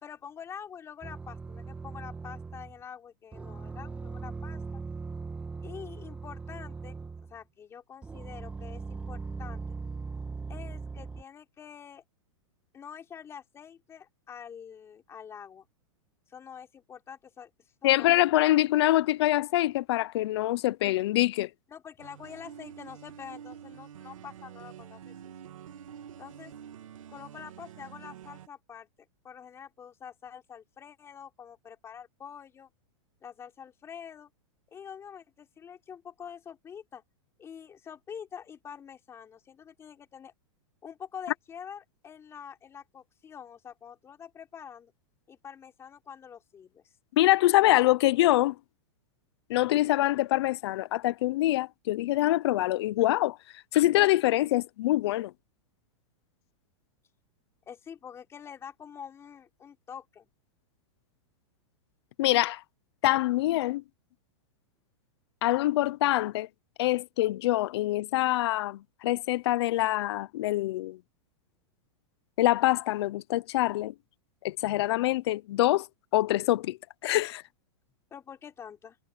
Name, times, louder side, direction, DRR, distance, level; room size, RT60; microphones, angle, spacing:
voice 1, 0.0-4.6 5.6-9.6 10.5-12.0 12.7-15.7 16.3-17.5 17.8-18.1 21.7-25.3 26.2-26.5 27.1-28.9 29.2-32.7 33.2-34.3 34.7-37.0 37.4-40.3 40.8-44.9 45.3-46.9 57.7-60.3 78.1-79.0, left 7 dB, 15° left, 3.7 m, -46 dB
sound 1, 1.0-2.8 3.3-7.4 8.0-11.2, right 4 dB, 10° right, 2.3 m, -39 dB
voice 2, 17.8-21.5 47.2-48.5 49.5-53.4 53.7-55.3 62.2-62.6 63.0-63.8 65.4-66.5 66.8-71.0 72.4-73.9 74.4-75.9 76.1-76.8 77.0-77.4, left 16 dB, 55° left, 0.8 m, -25 dB
sound 2, 22.0-28.5, right 9 dB, 90° right, 3.1 m, -47 dB
supercardioid pair, 160°, 17 cm